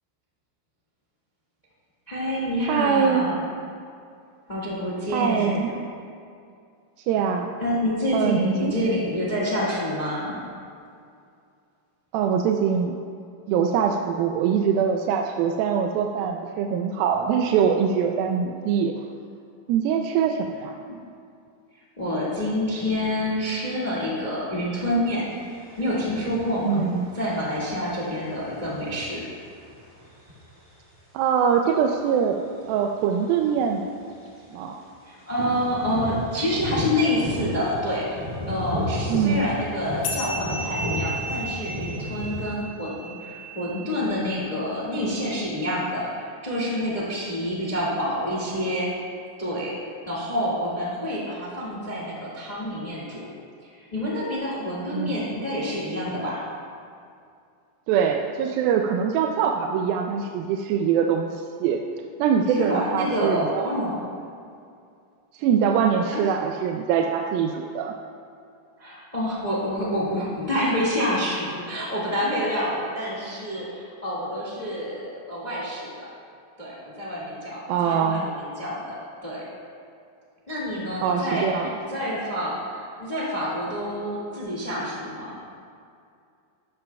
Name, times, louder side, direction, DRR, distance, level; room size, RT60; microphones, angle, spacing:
voice 1, 2.1-3.5 4.5-5.6 7.6-10.4 22.0-25.2 25.8-26.8 27.1-29.2 35.0-48.9 49.4-49.7 50.1-53.3 53.6-56.4 62.5-64.0 66.1-66.3 68.8-76.1 76.6-78.9 79.2-79.4 80.5-85.4, equal, 45° left, -5 dB, 0.5 m, -28 dB
voice 2, 2.7-3.3 5.1-5.9 7.1-7.5 8.1-8.7 12.1-12.9 13.5-18.9 19.7-20.7 26.7-27.1 31.1-32.4 32.7-33.8 34.5-34.8 39.1-39.5 54.9-55.2 57.9-61.8 62.2-63.7 65.3-68.0 77.7-78.3 81.0-81.7, right 7 dB, 80° right, 3 dB, 2.2 m, -23 dB
sound 1, 25.3-31.0 32.7-32.8 33.1-33.6 34.0-34.1 34.2-34.5 35.3-42.4, left 1 dB, 35° right, 0.8 m, -34 dB
sound 2, 40.0-44.9, right 1 dB, 70° left, 2.7 m, -35 dB
12.5 x 12.5 x 2.3 m, 2.4 s
omnidirectional pair, 4.4 m